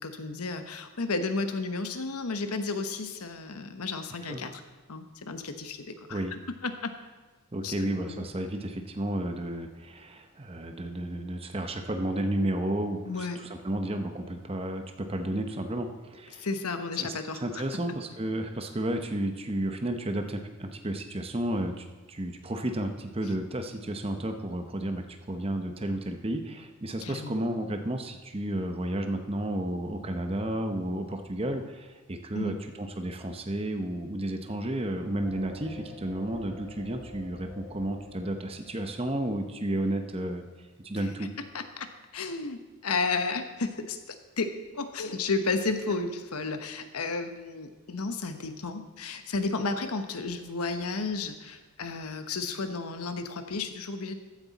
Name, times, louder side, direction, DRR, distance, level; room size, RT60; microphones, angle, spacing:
voice 1, 0.0-4.6 4.9-6.9 7.6-7.7 8.1-8.2 13.1-13.4 16.4-17.6 27.0-27.3 32.3-32.6 41.2-41.3 41.5-54.2, left 3 dB, 90° left, 8 dB, 1.0 m, -33 dB
voice 2, 7.5-16.5 17.0-40.4 40.8-41.3, right 1 dB, 25° right, 6 dB, 0.8 m, -32 dB
sound 1, 35.2-40.6, left 2 dB, ahead, 3.5 m, -49 dB
14.5 x 9.8 x 4.1 m, 1.3 s
head